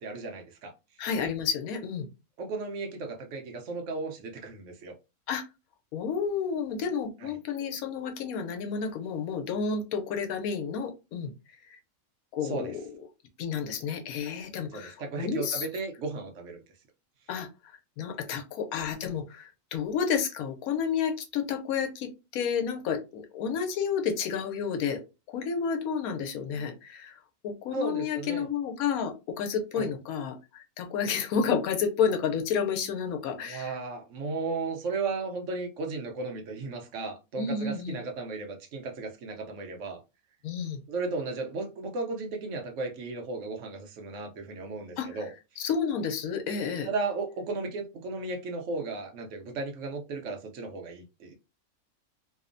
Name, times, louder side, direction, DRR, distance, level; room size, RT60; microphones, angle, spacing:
voice 1, 0.0-0.7 2.4-4.9 7.2-7.3 12.4-12.8 14.7-16.6 18.3-18.4 27.7-28.5 29.8-29.9 33.4-40.0 40.9-45.3 46.8-51.3, right 3 dB, 65° right, 0.9 m, -35 dB
voice 2, 1.0-2.1 5.3-5.4 5.9-11.3 12.3-12.8 13.4-15.7 17.3-17.5 18.0-25.0 25.3-27.2 27.4-33.8 37.3-38.0 40.4-40.8 45.0-45.1 45.6-46.9, left 6 dB, 85° left, 1.1 m, -30 dB
2.8 x 2.1 x 2.5 m
omnidirectional pair, 1.5 m